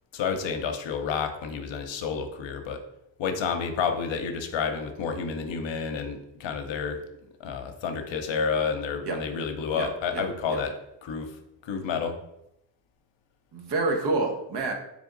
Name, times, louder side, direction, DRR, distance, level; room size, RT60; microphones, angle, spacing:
voice 1, 0.1-2.8 3.2-7.0 7.4-10.7 11.0-11.3 11.6-12.1, left 6 dB, 70° left, 6 dB, 0.8 m, -30 dB
voice 2, 9.7-10.6 13.5-14.7, right 3 dB, 60° right, 3 dB, 1.0 m, -28 dB
3.5 x 3.3 x 3.8 m, 0.83 s
cardioid pair, 65°, 46 cm